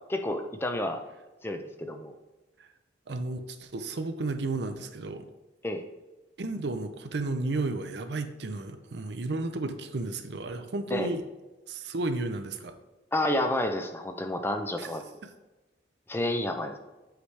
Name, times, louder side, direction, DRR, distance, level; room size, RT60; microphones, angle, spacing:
voice 1, 0.1-1.0 1.4-2.1 5.6-5.8 10.9-11.1 13.1-15.0 16.1-16.8, left 1 dB, 15° left, 5 dB, 0.5 m, -30 dB
voice 2, 3.1-5.3 6.4-11.2 11.7-12.8 14.8-14.9, right 2 dB, 70° right, 8 dB, 0.6 m, -33 dB
8.0 x 4.9 x 3.3 m, 1.1 s
head